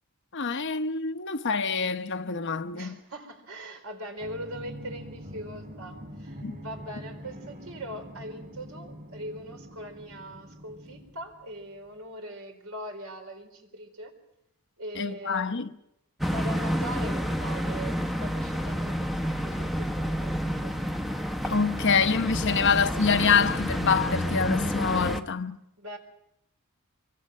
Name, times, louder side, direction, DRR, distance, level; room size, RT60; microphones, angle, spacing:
voice 1, 0.3-3.0 6.4-6.6 15.0-15.7 21.5-25.6, left 5 dB, 55° left, 0.9 m, -26 dB
voice 2, 2.7-14.1 14.8-15.5 16.3-20.8 25.8-26.0, right 1 dB, 70° right, 4.3 m, -41 dB
sound 1, 4.2-11.7, equal, 35° right, 5.1 m, -44 dB
sound 2, 16.2-25.2, equal, ahead, 1.0 m, -29 dB
25.5 x 23.5 x 6.5 m
head